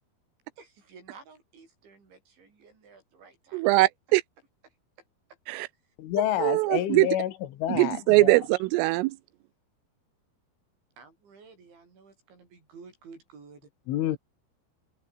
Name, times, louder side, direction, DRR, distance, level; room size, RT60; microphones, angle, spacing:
voice 1, 0.6-3.8 5.8-5.9 11.0-13.7, right 5 dB, 65° right, 9.9 m, -52 dB
voice 2, 3.5-4.2 5.5-5.7 6.4-7.1 7.7-9.2, right 21 dB, 85° right, 3.3 m, -22 dB
voice 3, 6.0-7.3 7.6-8.4 13.9-14.2, left 12 dB, 75° left, 4.1 m, -28 dB
omnidirectional pair, 5.7 m